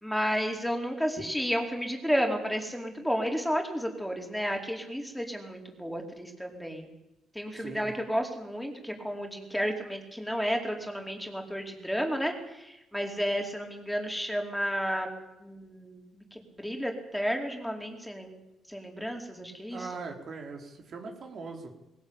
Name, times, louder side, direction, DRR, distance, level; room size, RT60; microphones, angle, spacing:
voice 1, 0.0-6.9 7.3-15.1 15.4-18.4 18.7-20.0, equal, ahead, 2 dB, 4.7 m, -32 dB
voice 2, 7.5-7.9 19.7-21.8, right 4 dB, 55° right, 3 dB, 4.3 m, -41 dB
21.0 x 17.0 x 9.0 m, 0.92 s
cardioid pair, 90°, 0 cm